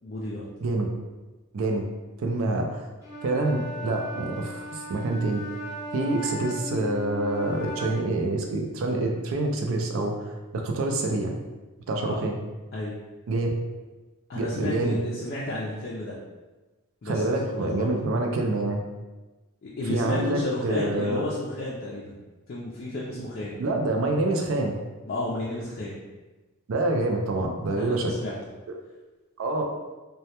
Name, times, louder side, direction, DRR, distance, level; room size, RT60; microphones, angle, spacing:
voice 1, 0.0-0.5 12.0-12.2 12.7-12.9 14.3-16.1 17.0-17.9 19.6-22.1 22.5-23.6 25.0-26.0 27.8-28.4, left 1 dB, 45° left, -6 dB, 0.3 m, -32 dB
voice 2, 2.2-2.9 3.2-4.6 4.9-5.4 5.9-10.2 10.5-11.3 11.9-12.3 13.3-13.6 14.3-15.0 17.1-18.8 19.9-21.2 23.6-24.7 26.7-28.0 29.4-29.6, right 2 dB, 65° right, 2 dB, 0.4 m, -26 dB
Wind instrument woodwind instrument, 3.0-8.2, equal, 15° right, 0.7 m, -36 dB
2.2 x 2.1 x 2.8 m, 1.2 s
head